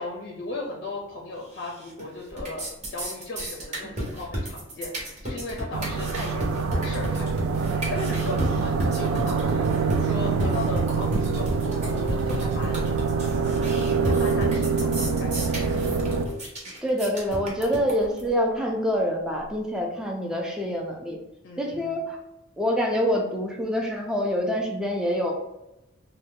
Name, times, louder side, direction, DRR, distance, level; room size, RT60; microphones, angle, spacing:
voice 1, 0.0-12.9 13.5-15.6 21.4-22.1, left 2 dB, 50° left, -1 dB, 0.5 m, -37 dB
sound 1, 1.6-2.0 2.3-18.3, equal, 35° right, 0.8 m, -32 dB
sound 2, 5.7-16.3, right 5 dB, 80° right, 0.3 m, -25 dB
voice 2, 16.8-21.2 21.6-22.2 22.6-25.3, equal, 5° right, 0 dB, 0.4 m, -26 dB
2.7 x 2.2 x 3.5 m, 0.92 s
head